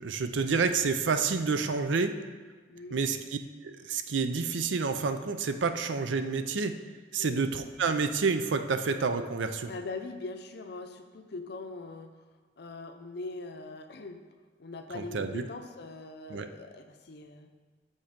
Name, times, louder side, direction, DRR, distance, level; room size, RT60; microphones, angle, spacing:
voice 1, 0.0-2.2 2.9-6.8 7.1-9.7 14.9-15.5 16.3-16.5, right 4 dB, 90° right, 9 dB, 0.5 m, -29 dB
voice 2, 2.7-3.0 7.2-7.4 9.7-12.1 12.6-14.2 14.6-17.5, left 3 dB, 60° left, 7 dB, 0.6 m, -41 dB
7.1 x 5.4 x 5.1 m, 1.5 s
head